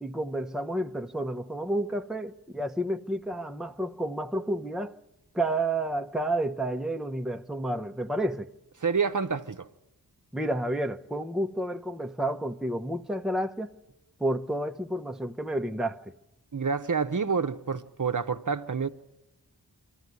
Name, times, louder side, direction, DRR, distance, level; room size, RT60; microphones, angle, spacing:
voice 1, 0.0-5.0 5.3-8.5 10.3-13.7 14.2-16.1, right 1 dB, ahead, 0.8 m, -30 dB
voice 2, 8.8-9.7 16.5-18.9, right 5 dB, 50° right, 0.8 m, -28 dB
24.0 x 14.5 x 9.5 m
wide cardioid pair, 40°, 39 cm